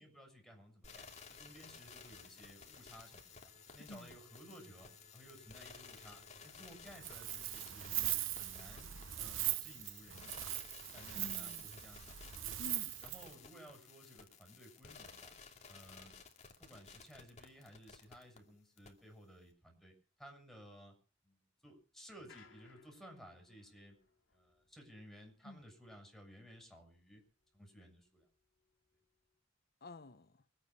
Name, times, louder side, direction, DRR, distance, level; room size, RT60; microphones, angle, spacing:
voice 1, 0.0-8.0 8.4-10.5 10.9-12.2 13.0-15.3 15.7-16.2 16.6-20.9 21.2-23.9 24.3-27.2 27.5-28.3, equal, ahead, 6.8 m, -57 dB
sound 1, 0.8-18.4 18.8-18.9, left 5 dB, 35° left, 2.8 m, -56 dB
voice 2, 3.8-4.2 11.1-11.7 12.6-13.0 25.4-25.6 29.8-30.5, left 2 dB, 55° left, 1.1 m, -51 dB
Wind, 6.9-13.3, right 14 dB, 90° right, 0.8 m, -40 dB
sound 2, 22.3-27.7 28.0-29.3, left 5 dB, 85° left, 2.7 m, -67 dB
24.5 x 9.3 x 6.0 m
head